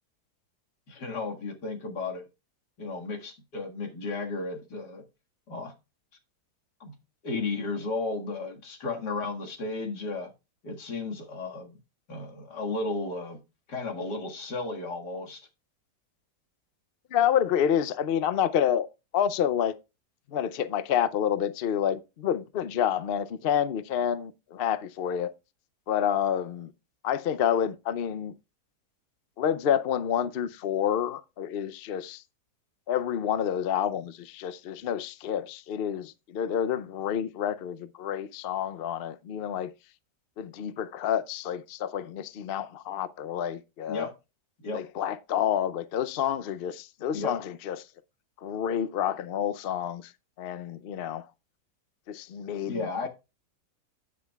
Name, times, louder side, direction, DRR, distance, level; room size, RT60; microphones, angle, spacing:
voice 1, 0.9-2.2 2.8-5.0 5.5-5.7 6.8-7.0 7.2-10.3 10.6-11.8 12.1-13.4 13.7-15.5 43.9-44.1 44.6-44.8 47.1-47.4 52.7-53.1, left 3 dB, 85° left, 2.5 m, -34 dB
voice 2, 17.1-18.9 19.1-19.7 20.3-25.3 25.9-26.7 27.0-28.3 29.4-32.2 32.9-39.7 40.4-44.1 44.7-47.8 48.4-50.1 50.4-51.3 52.1-53.1, left 9 dB, 60° left, 0.6 m, -28 dB
18.0 x 6.1 x 2.3 m
omnidirectional pair, 1.7 m